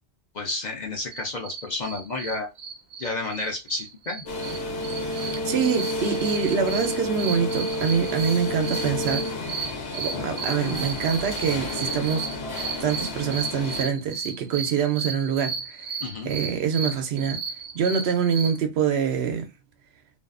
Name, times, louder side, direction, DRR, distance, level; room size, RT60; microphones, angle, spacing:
voice 1, 0.3-2.5 3.0-4.2 16.0-16.3, left 3 dB, 50° left, 0.6 m, -31 dB
sound 1, 1.1-18.6, right 5 dB, 55° right, 0.6 m, -34 dB
sound 2, 4.3-13.8, left 2 dB, 70° left, 1.1 m, -31 dB
voice 2, 5.0-12.3 12.8-15.9 16.2-17.4 17.7-19.5, right 7 dB, 75° right, 0.8 m, -25 dB
2.5 x 2.3 x 2.4 m
omnidirectional pair, 1.1 m